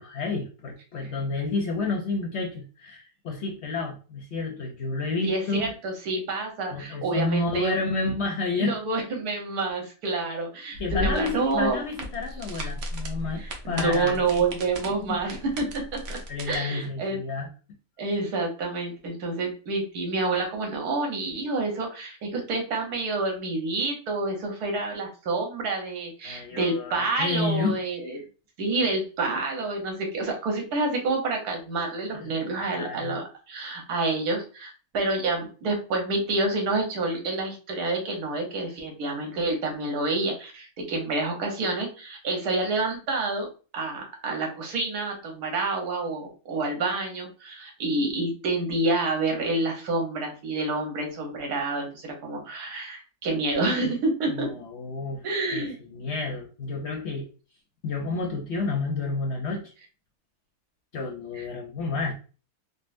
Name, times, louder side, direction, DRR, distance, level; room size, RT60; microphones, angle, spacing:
voice 1, 0.0-5.7 6.7-8.8 10.8-14.4 14.9-15.2 16.3-17.5 26.2-28.2 32.1-33.2 54.3-55.2 55.5-57.3 57.8-59.7 60.9-62.1, left 3 dB, 60° left, 1 dB, 0.7 m, -30 dB
voice 2, 5.2-7.8 8.5-11.8 13.4-15.7 16.1-16.2 16.5-17.2 18.0-28.2 28.6-43.5 43.7-54.5 55.2-55.8, right 3 dB, 85° right, 1 dB, 1.4 m, -28 dB
sound 1, 10.7-16.5, equal, 70° right, 1.0 m, -35 dB
3.8 x 2.1 x 2.5 m, 0.35 s
omnidirectional pair, 1.6 m